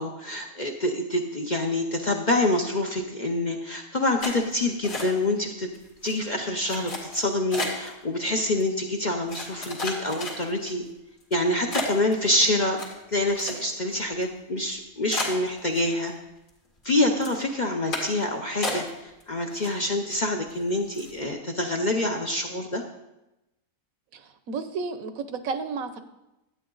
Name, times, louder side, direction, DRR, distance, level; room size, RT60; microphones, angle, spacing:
voice 1, 0.0-5.7 6.0-10.8 11.3-12.8 13.1-16.1 16.8-22.8, left 1 dB, 40° left, 2 dB, 0.7 m, -26 dB
sound 1, 4.2-5.4 5.7-6.1 6.7-7.9 8.6-8.7 9.3-10.7 11.2-11.3 11.7-13.9 14.2-14.3 14.7-14.8 15.1-16.2 16.5-16.9 17.2-17.4 17.9-18.2 18.6-19.2 19.5-20.1 20.5-20.6 20.9-21.2, left 2 dB, 65° left, 2.7 m, -33 dB
voice 2, 24.5-26.0, right 4 dB, 70° right, 10 dB, 1.1 m, -32 dB
12.0 x 8.8 x 3.9 m, 0.94 s
omnidirectional pair, 1.5 m